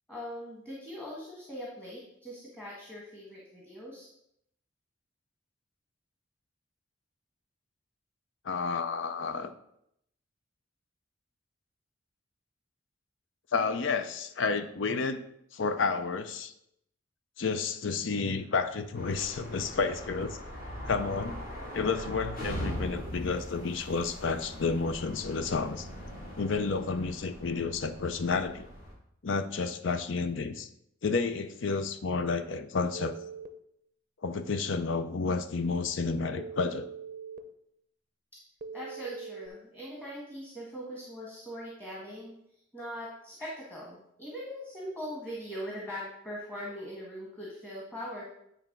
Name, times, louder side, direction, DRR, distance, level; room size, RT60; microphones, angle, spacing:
voice 1, 0.1-4.1 38.7-42.3 42.7-48.3, equal, 5° left, -5 dB, 1.4 m, -41 dB
voice 2, 8.4-9.5 13.5-15.2 15.5-16.5 17.4-20.4 20.9-25.9 26.4-28.7 29.2-30.7 31.0-33.2 34.2-36.9, left 4 dB, 70° left, 10 dB, 0.5 m, -31 dB
sound 1, 18.9-28.9, equal, 45° left, 2.3 m, -41 dB
Telephone, 32.9-33.5 36.4-37.4 38.6-39.5, right 6 dB, 45° right, 0.5 m, -42 dB
9.0 x 3.4 x 5.9 m, 0.75 s
head